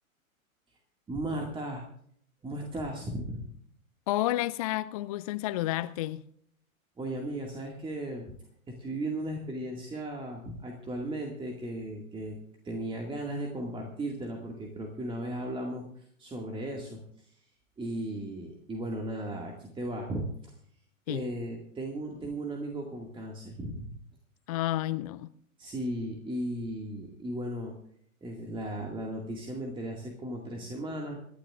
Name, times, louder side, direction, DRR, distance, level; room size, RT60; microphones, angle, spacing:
voice 1, 1.1-1.8 2.4-3.4 7.0-8.3 8.7-12.4 12.6-17.4 17.8-20.5 21.1-23.8 25.6-27.8 28.2-31.2, right 1 dB, 10° right, 2.0 m, -36 dB
voice 2, 4.1-6.2 21.1-21.3 24.5-25.3, left 15 dB, 30° left, 0.4 m, -30 dB
27.5 x 11.5 x 2.5 m
figure-of-eight pair, 105°, 42 cm